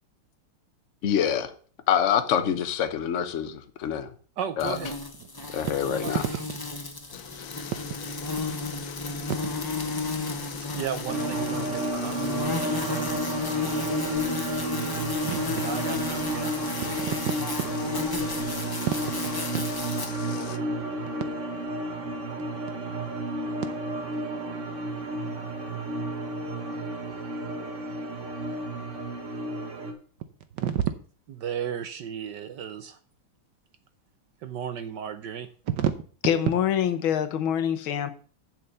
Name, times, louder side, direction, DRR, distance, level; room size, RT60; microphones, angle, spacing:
voice 1, 1.0-1.5 1.9-4.1 4.6-4.8 5.5-6.2, left 9 dB, 50° left, 0.9 m, -26 dB
voice 2, 4.4-4.9 5.2-6.4 7.7-7.8 9.3-9.4 10.5-13.2 15.2-17.3 23.6-23.7 30.5-30.8 31.3-33.0 34.4-35.9, right 9 dB, 65° right, 1.1 m, -33 dB
sound 1, 4.6-20.1, left 2 dB, 30° left, 0.4 m, -33 dB
sound 2, 7.1-20.6, left 11 dB, 90° left, 1.7 m, -41 dB
sound 3, 11.1-29.9, right 1 dB, 40° right, 1.6 m, -32 dB
voice 3, 36.2-38.1, left 9 dB, 70° left, 1.7 m, -25 dB
7.4 x 6.7 x 6.5 m
omnidirectional pair, 2.4 m